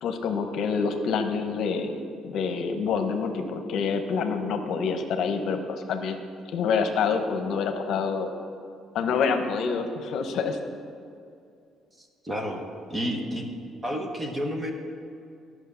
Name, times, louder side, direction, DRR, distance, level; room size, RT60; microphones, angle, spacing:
voice 1, 0.0-2.0 2.2-8.3 8.9-10.6, left 5 dB, 65° left, 6 dB, 0.9 m, -27 dB
voice 2, 12.0-12.6 12.9-13.5 13.8-14.7, equal, 20° right, 3 dB, 1.1 m, -30 dB
11.0 x 6.1 x 6.9 m, 2.4 s
cardioid pair, 140°, 0 cm